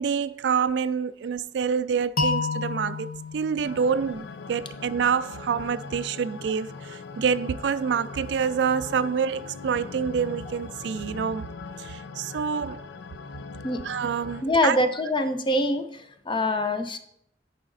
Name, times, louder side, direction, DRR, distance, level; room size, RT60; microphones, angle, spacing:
voice 1, 0.0-11.5 11.8-12.8 13.8-14.8, right 6 dB, 70° right, 0.3 m, -27 dB
sound 1, 2.2-5.1, left 4 dB, 55° left, 0.9 m, -31 dB
sound 2, 3.6-14.4, left 4 dB, 80° left, 0.5 m, -40 dB
voice 2, 14.4-17.0, left 1 dB, 30° left, 0.7 m, -24 dB
10.0 x 5.0 x 4.0 m
head